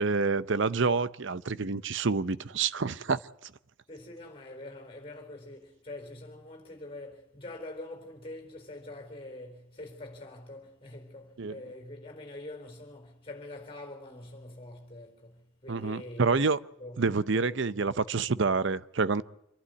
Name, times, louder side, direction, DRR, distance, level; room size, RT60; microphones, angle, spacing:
voice 1, 0.0-3.5 11.4-11.5 15.7-16.6 17.0-19.2, right 4 dB, 60° right, 0.7 m, -28 dB
voice 2, 3.9-16.5 16.8-17.0 17.3-17.8, left 2 dB, 25° left, 4.3 m, -45 dB
26.5 x 11.5 x 9.5 m
head